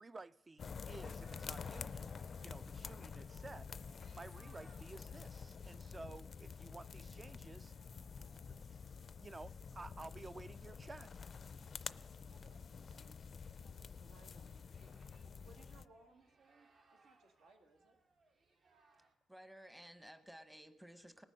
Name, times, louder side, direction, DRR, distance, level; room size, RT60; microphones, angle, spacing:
voice 1, 0.0-3.7 4.1-7.7 8.5-8.8 9.2-11.1, right 3 dB, 25° right, 0.3 m, -53 dB
sound 1, 0.6-15.9, left 6 dB, 45° left, 0.4 m, -49 dB
sound 2, 0.9-19.1, right 3 dB, 55° right, 1.5 m, -72 dB
voice 2, 12.3-18.0, right 3 dB, 80° right, 1.9 m, -67 dB
voice 3, 19.3-21.3, equal, 5° right, 0.9 m, -55 dB
18.5 x 9.0 x 5.5 m
cardioid pair, 90°, 0 cm